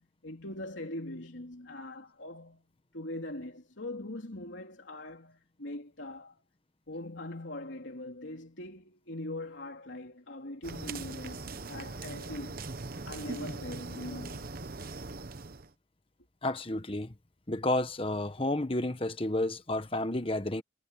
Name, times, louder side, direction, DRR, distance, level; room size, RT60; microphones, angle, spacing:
voice 1, 0.0-2.7 2.9-6.4 6.9-12.5 13.0-14.5, left 1 dB, 75° left, 3.2 m, -42 dB
sound 1, 10.6-15.7, right 3 dB, 50° right, 1.0 m, -40 dB
voice 2, 16.4-17.1 17.5-20.6, left 1 dB, 30° left, 1.3 m, -31 dB
head